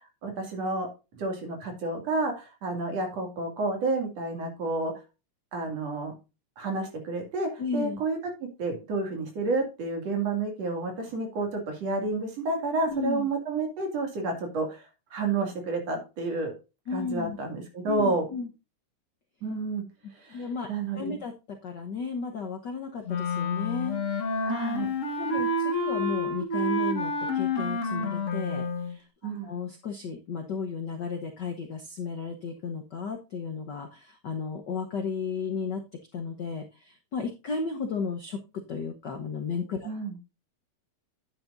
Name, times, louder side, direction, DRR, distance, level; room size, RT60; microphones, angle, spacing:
voice 1, 0.2-0.9 1.1-4.9 5.5-6.2 6.6-16.5 16.9-18.3 19.4-19.8 20.1-21.2 24.4-24.9 29.2-29.5 39.9-40.2, right 3 dB, 55° right, 3 dB, 3.4 m, -30 dB
voice 2, 7.6-8.0 12.9-13.3 16.9-17.4 17.8-18.5 20.3-20.7 20.9-21.3 21.6-24.3 25.2-35.8 36.1-38.4 38.7-39.9, left 5 dB, 85° left, 4 dB, 0.9 m, -34 dB
Wind instrument woodwind instrument, 23.0-28.9, left 2 dB, 45° left, 1.0 m, -29 dB
9.7 x 9.4 x 2.6 m, 0.29 s
omnidirectional pair, 3.5 m